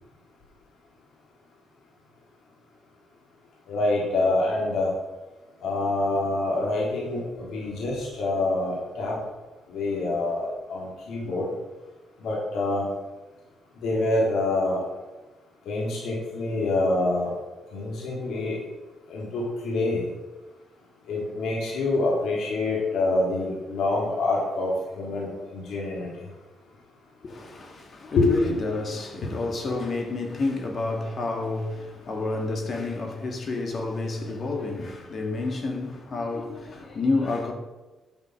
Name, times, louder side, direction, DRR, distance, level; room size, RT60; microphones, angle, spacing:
voice 1, 3.7-4.9 5.6-9.2 9.7-11.5 12.2-12.8 13.8-14.8 15.6-17.3 17.7-18.6 19.1-20.0 21.1-24.7 25.0-26.1 28.2-28.3, left 2 dB, 80° left, 3.3 m, -26 dB
voice 2, 27.2-37.5, left 3 dB, 40° left, 2.0 m, -29 dB
11.0 x 5.8 x 6.3 m
cardioid pair, 115°, 0 cm